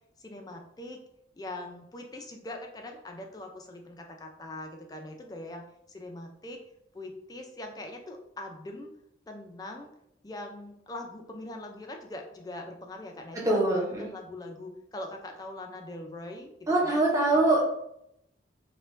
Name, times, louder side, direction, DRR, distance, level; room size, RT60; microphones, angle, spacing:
voice 1, 0.2-1.0 1.4-6.6 6.9-8.9 9.3-9.9 10.2-16.5 16.8-17.0 17.3-17.4, left 1 dB, 20° left, 3 dB, 0.4 m, -42 dB
voice 2, 13.3-14.1 16.7-17.6, right 2 dB, 15° right, -3 dB, 0.7 m, -23 dB
4.3 x 2.2 x 2.5 m, 0.78 s
head